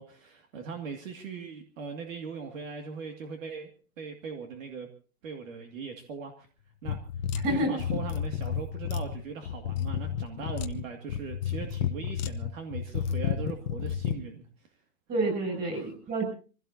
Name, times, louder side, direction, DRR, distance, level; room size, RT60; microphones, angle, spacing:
voice 1, 0.0-3.7 4.0-4.9 5.2-6.5 6.8-7.0 7.5-14.7 15.7-15.9, right 5 dB, 55° right, 4 dB, 2.4 m, -40 dB
sound 1, 6.8-14.2, left 8 dB, 30° left, 1.0 m, -31 dB
voice 2, 7.4-7.7 15.1-16.3, right 1 dB, 20° right, 2 dB, 7.5 m, -28 dB
26.0 x 16.5 x 2.8 m, 0.40 s
hypercardioid pair, 155°, 47 cm